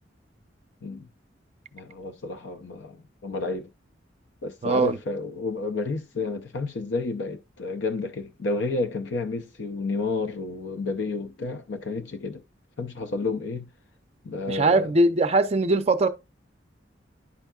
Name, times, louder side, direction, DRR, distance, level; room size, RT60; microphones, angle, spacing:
voice 1, 1.7-3.7 4.4-12.4 12.8-13.7 14.2-14.9, left 3 dB, 70° left, 0.5 m, -31 dB
voice 2, 4.6-5.0 14.5-16.1, right 2 dB, 35° right, 0.5 m, -21 dB
11.0 x 4.5 x 2.3 m
head